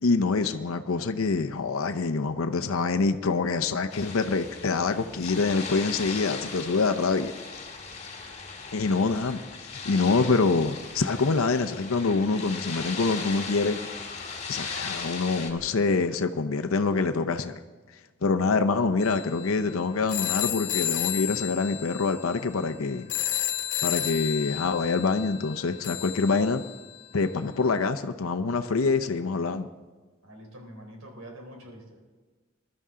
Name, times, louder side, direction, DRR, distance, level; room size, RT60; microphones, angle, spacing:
voice 1, 0.0-7.3 8.7-13.8 14.5-17.5 18.2-23.1 23.8-26.6 27.1-29.7, left 4 dB, 85° left, 8 dB, 0.7 m, -25 dB
sound 1, 3.9-15.5, left 4 dB, 30° left, 1.8 m, -38 dB
sound 2, 19.0-27.1, left 12 dB, 55° left, 1.0 m, -32 dB
voice 2, 30.2-32.0, right 1 dB, 85° right, 1 dB, 3.6 m, -45 dB
21.0 x 12.0 x 3.7 m, 1.3 s
head